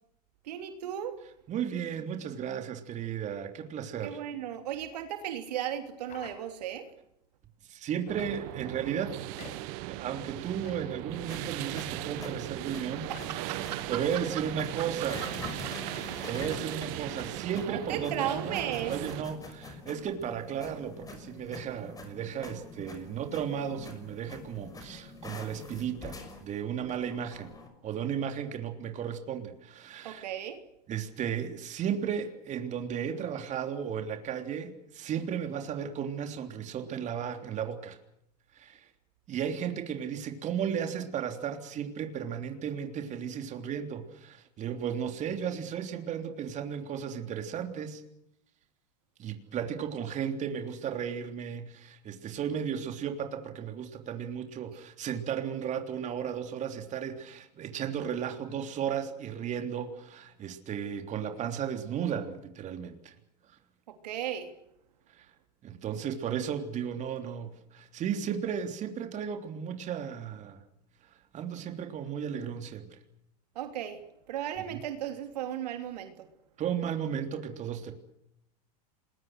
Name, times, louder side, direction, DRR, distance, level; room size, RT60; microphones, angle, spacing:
voice 1, 0.4-1.1 4.0-6.9 13.1-14.0 14.8-14.9 15.6-16.2 16.9-17.3 17.7-18.9 30.0-30.6 63.9-64.5 73.5-74.0 74.3-76.3, right 10 dB, 75° right, 6 dB, 3.1 m, -36 dB
voice 2, 1.5-4.2 7.7-9.2 9.9-13.1 13.9-15.2 16.2-18.6 18.9-27.5 27.8-30.2 30.9-38.0 38.5-38.9 39.3-48.0 49.2-63.1 65.1-65.3 65.6-70.6 71.1-73.0 76.6-77.9, right 8 dB, 35° right, 5 dB, 3.4 m, -34 dB
sound 1, 6.0-6.9 8.2-8.7 9.3-9.8 10.6-11.1 11.8-12.6 13.1-13.9 14.8-14.9 15.2-15.3 15.8-16.1, left 7 dB, 35° left, 5.2 m, -51 dB
sound 2, 8.1-19.2, right 19 dB, 55° right, 1.2 m, -38 dB
sound 3, 11.1-27.7, left 3 dB, 15° left, 6.1 m, -45 dB
27.5 x 21.0 x 6.5 m, 0.79 s
hypercardioid pair, 105°, 21 cm